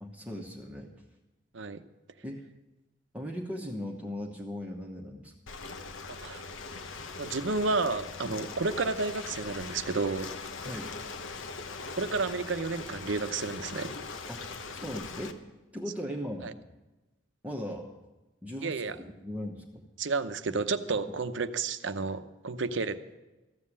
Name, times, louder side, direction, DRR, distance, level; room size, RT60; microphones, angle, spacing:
voice 1, 0.0-1.0 2.2-2.4 3.1-5.3 8.2-8.4 10.6-10.9 14.3-14.4 14.7-15.4 15.7-16.5 17.4-17.9 18.4-19.8, equal, 5° right, -1 dB, 1.1 m, -38 dB
Ocean, 5.5-15.3, left 4 dB, 85° left, 1.0 m, -41 dB
voice 2, 6.1-6.4 7.2-10.3 11.9-13.9 16.4-16.5 18.6-19.0 20.0-23.1, right 3 dB, 75° right, 11 dB, 0.8 m, -31 dB
14.5 x 7.6 x 9.9 m, 1.1 s
head